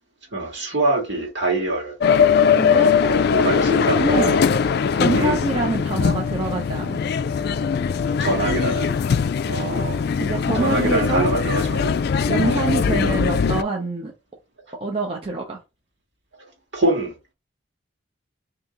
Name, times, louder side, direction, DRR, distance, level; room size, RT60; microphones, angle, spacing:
voice 1, 0.3-1.9 3.0-4.4 5.1-5.4 8.2-8.9 9.5-10.0 10.5-11.9 12.4-12.7 16.7-17.1, right 2 dB, 65° right, 1.7 m, -24 dB
sound 1, 2.0-13.6, left 6 dB, 55° left, 0.3 m, -20 dB
voice 2, 2.5-2.9 3.3-4.4 4.9-7.0 10.2-11.3 12.3-14.1 14.8-15.6, right 2 dB, 30° right, 0.7 m, -25 dB
3.4 x 2.9 x 3.9 m
head